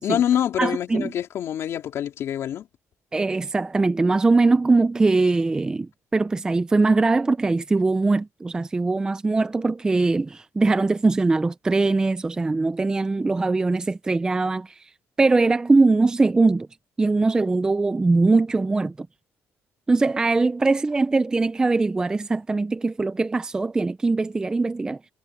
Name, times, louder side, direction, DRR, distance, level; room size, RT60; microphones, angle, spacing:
voice 1, 0.0-2.7, left 10 dB, 60° left, 3.3 m, -25 dB
voice 2, 0.6-1.1 3.1-14.8 15.2-16.7 17.0-19.1 19.9-25.0, right 3 dB, 15° right, 0.4 m, -21 dB
cardioid pair, 155°, 5 cm